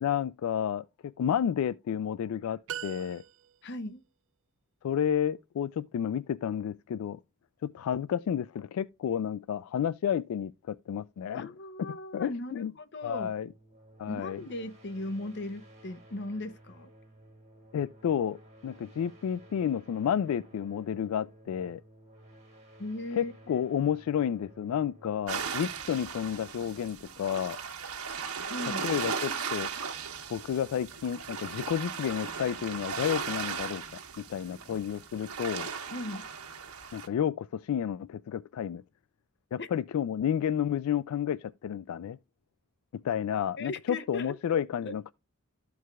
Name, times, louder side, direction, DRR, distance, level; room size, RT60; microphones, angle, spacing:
voice 1, 0.0-3.2 4.8-7.2 7.6-11.5 11.8-12.7 13.0-13.5 14.0-14.4 17.7-21.8 23.2-27.6 28.8-29.7 30.3-33.8 34.2-35.7 36.9-38.8 39.5-42.2 43.0-45.1, left 9 dB, 75° left, 0.3 m, -31 dB
sound 1, 2.7-3.8, right 10 dB, 60° right, 0.3 m, -41 dB
voice 2, 3.6-4.0 11.3-13.4 14.1-16.9 22.8-23.7 28.5-28.9 35.9-36.3 39.6-39.7 43.6-45.1, left 1 dB, 55° left, 0.8 m, -38 dB
sound 2, 13.4-26.8, right 1 dB, 30° right, 2.3 m, -55 dB
sound 3, 25.3-37.1, right 6 dB, 80° right, 1.3 m, -37 dB
13.5 x 4.7 x 2.3 m
head